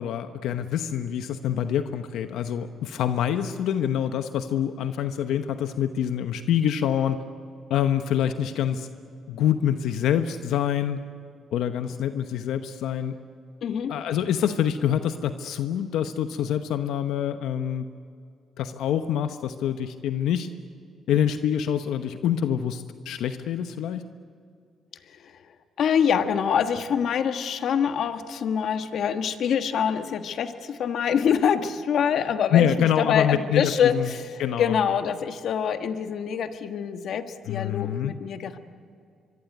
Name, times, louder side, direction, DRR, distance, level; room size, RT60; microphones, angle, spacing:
voice 1, 0.0-7.2 7.7-8.9 9.3-11.0 11.5-13.2 13.9-17.9 18.6-20.5 21.1-24.0 32.2-32.3 32.5-34.1 34.4-34.7 37.5-38.1, left 9 dB, 85° left, 9 dB, 1.0 m, -26 dB
voice 2, 13.6-13.9 25.1-25.4 25.8-38.6, left 7 dB, 65° left, 8 dB, 1.5 m, -25 dB
24.0 x 24.0 x 9.6 m, 2.4 s
cardioid pair, 90°, 0 cm